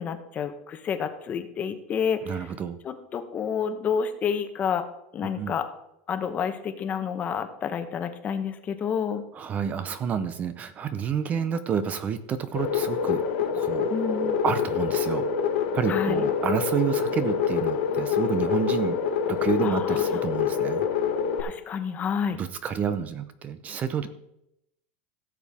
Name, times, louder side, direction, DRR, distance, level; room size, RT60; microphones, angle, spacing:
voice 1, 0.0-2.4 2.8-4.8 5.1-5.7 6.1-9.2 13.9-14.4 15.9-16.2 19.6-20.2 21.4-22.4, left 7 dB, 25° left, 9 dB, 1.0 m, -29 dB
voice 2, 2.3-2.8 5.4-5.5 9.3-13.2 13.5-15.3 15.7-19.0 19.3-20.8 22.4-24.1, right 7 dB, 25° right, 12 dB, 0.7 m, -29 dB
sound 1, 12.5-21.4, left 7 dB, 75° left, 1.4 m, -26 dB
16.5 x 7.2 x 3.6 m, 0.81 s
supercardioid pair, 155°, 6 cm